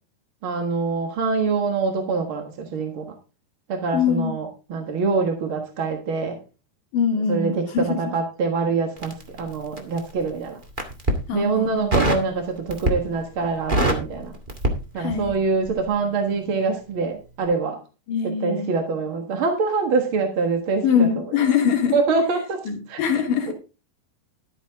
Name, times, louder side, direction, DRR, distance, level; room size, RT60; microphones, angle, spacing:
voice 1, 0.4-3.1 3.7-6.4 7.3-10.6 11.3-14.4 14.9-17.8 18.2-21.4 21.9-23.0 23.5-23.6, right 4 dB, 50° right, 4 dB, 1.7 m, -25 dB
voice 2, 3.9-4.3 6.9-8.0 11.3-11.9 15.0-15.3 18.1-18.7 20.8-22.0 22.7-23.5, left 7 dB, 70° left, 3 dB, 3.2 m, -23 dB
Crackle, 9.0-10.1 10.6-11.2 11.9-12.3 12.7-13.2 13.5-15.4 15.6-15.9, right 1 dB, 25° right, 1.0 m, -23 dB
12.5 x 8.7 x 3.6 m, 0.31 s
omnidirectional pair, 4.2 m